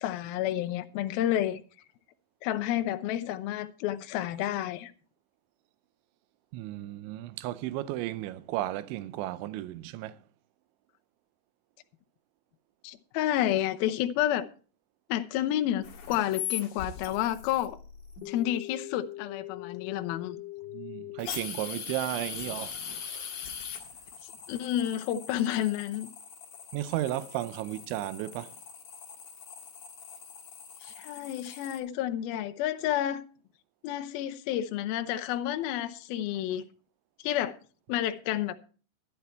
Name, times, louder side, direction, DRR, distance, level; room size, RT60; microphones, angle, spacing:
voice 1, 0.0-1.6 2.4-4.9 12.8-14.5 15.1-17.8 18.3-20.4 24.5-26.1 30.8-33.2 33.8-36.6 37.2-37.6 37.9-38.6, left 12 dB, 80° left, 2.1 m, -30 dB
voice 2, 6.5-10.2 20.7-23.6 26.7-28.6, right 14 dB, 85° right, 3.1 m, -34 dB
sound 1, 15.8-31.8, left 9 dB, 50° left, 2.9 m, -41 dB
12.0 x 12.0 x 4.3 m
omnidirectional pair, 5.4 m